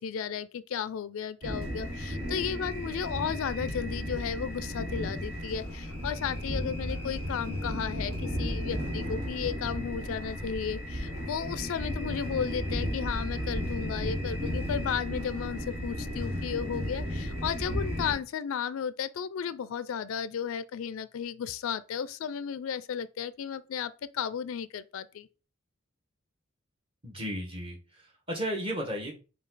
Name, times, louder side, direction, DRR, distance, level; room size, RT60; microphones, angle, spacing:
voice 1, 0.0-25.3, left 7 dB, 75° left, 0.3 m, -34 dB
sound 1, 1.4-18.1, equal, 70° right, 1.3 m, -34 dB
voice 2, 27.0-29.1, equal, 25° right, 1.2 m, -34 dB
5.0 x 2.3 x 3.9 m
head